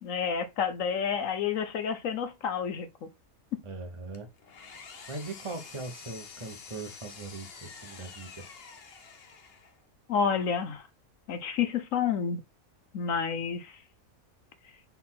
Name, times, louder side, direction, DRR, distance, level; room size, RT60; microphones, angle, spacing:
voice 1, 0.0-3.1 3.5-3.6 10.1-10.8 11.3-12.4 12.9-13.8, left 7 dB, 65° left, 1.1 m, -29 dB
voice 2, 3.6-4.3 5.1-8.5, right 3 dB, 25° right, 0.9 m, -40 dB
Engine, 4.1-9.9, left 5 dB, 45° left, 1.1 m, -48 dB
4.2 x 4.2 x 5.7 m
omnidirectional pair, 1.5 m